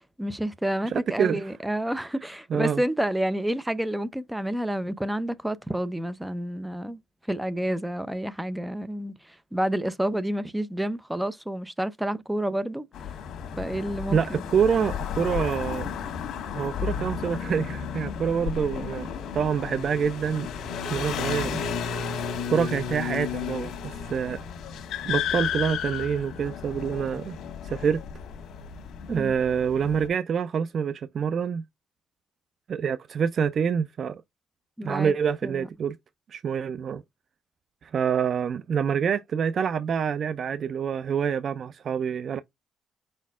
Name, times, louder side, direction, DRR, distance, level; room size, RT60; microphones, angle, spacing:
voice 1, 0.2-7.0 7.3-12.9 13.6-14.4 29.1-29.4 34.8-35.1 35.4-35.7, right 1 dB, 5° right, 0.6 m, -29 dB
voice 2, 0.9-1.4 2.5-2.8 14.1-15.9 16.5-20.5 20.9-21.6 22.5-24.4 25.0-27.4 27.6-28.0 29.1-31.6 32.7-34.2 34.8-36.0 36.3-37.0 37.8-42.4, right 7 dB, 55° right, 0.3 m, -26 dB
sound 1, 12.9-30.1, left 7 dB, 75° left, 1.2 m, -33 dB
5.0 x 4.2 x 2.4 m
cardioid pair, 90°, 0 cm